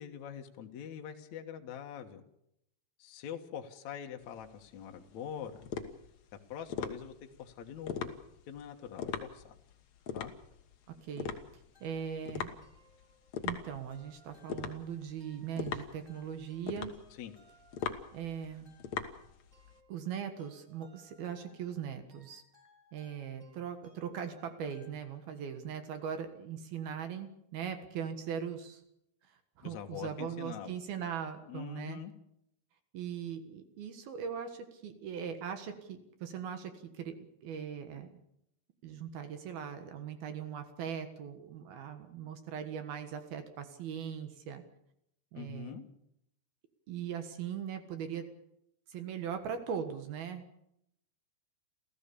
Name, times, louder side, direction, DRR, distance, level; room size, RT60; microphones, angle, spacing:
voice 1, 0.0-2.2 3.0-5.6 6.5-7.1 7.4-8.1 8.5-9.6 10.1-10.3 17.2-17.3 29.6-30.7 31.5-32.1 45.3-45.8, left 9 dB, 65° left, 4 dB, 1.8 m, -44 dB
sound 1, 4.2-19.8, left 7 dB, 85° left, 1.5 m, -41 dB
voice 2, 10.9-12.5 13.4-17.0 18.1-18.7 19.9-22.4 22.9-28.8 29.3-32.0 32.9-37.2 37.4-38.1 38.8-44.6 45.3-45.8 46.9-48.2 48.9-50.4, right 8 dB, 60° right, 8 dB, 3.0 m, -40 dB
sound 2, 11.7-25.6, left 1 dB, 10° right, 6.6 m, -66 dB
28.5 x 15.0 x 7.0 m, 0.78 s
omnidirectional pair, 5.4 m